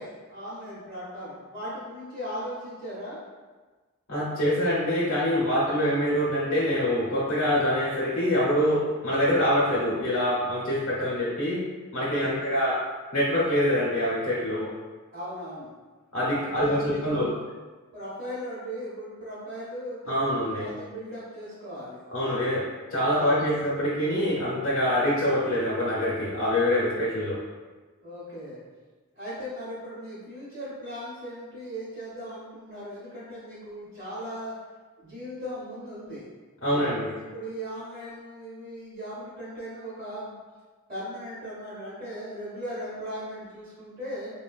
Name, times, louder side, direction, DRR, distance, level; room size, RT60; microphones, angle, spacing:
voice 1, 0.0-3.2 12.1-12.4 15.1-15.7 16.4-17.4 17.9-22.5 23.1-23.4 28.0-28.6 29.1-34.5 35.0-36.3 36.7-40.4 40.9-44.3, equal, 40° right, -12 dB, 0.9 m, -38 dB
voice 2, 4.1-11.6 11.9-12.8 13.1-14.7 16.1-17.3 20.1-20.7 22.1-22.6 22.9-27.4 36.6-37.1, equal, 70° left, -7 dB, 0.7 m, -25 dB
3.2 x 2.1 x 2.3 m, 1.3 s
head